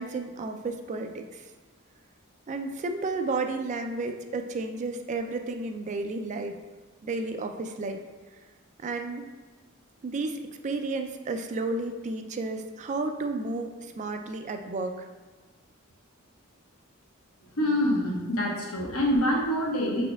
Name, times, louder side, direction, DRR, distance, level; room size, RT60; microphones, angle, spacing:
voice 1, 0.0-1.4 2.5-6.6 7.0-8.0 8.8-9.3 10.0-15.0, right 3 dB, 35° right, 6 dB, 0.3 m, -32 dB
voice 2, 17.6-20.0, left 1 dB, 85° left, -2 dB, 1.0 m, -26 dB
4.9 x 4.2 x 2.3 m, 1.4 s
head